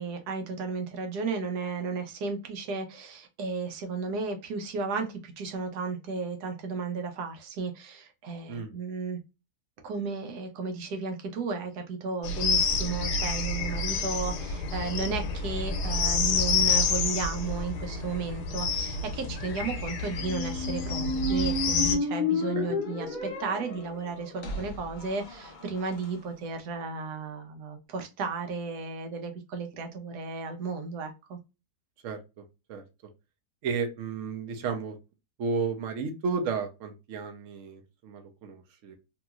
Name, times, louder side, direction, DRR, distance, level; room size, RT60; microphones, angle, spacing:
voice 1, 0.0-9.2 9.8-31.4, right 4 dB, 80° right, 1.2 m, -34 dB
sound 1, 12.2-22.0, left 4 dB, 90° left, 1.3 m, -29 dB
Squeak, 20.1-26.1, left 2 dB, 50° left, 0.5 m, -32 dB
voice 2, 32.0-32.4 32.7-32.8 33.6-35.0 35.4-39.0, right 5 dB, 65° right, 0.9 m, -33 dB
3.0 x 2.9 x 2.3 m
omnidirectional pair, 1.7 m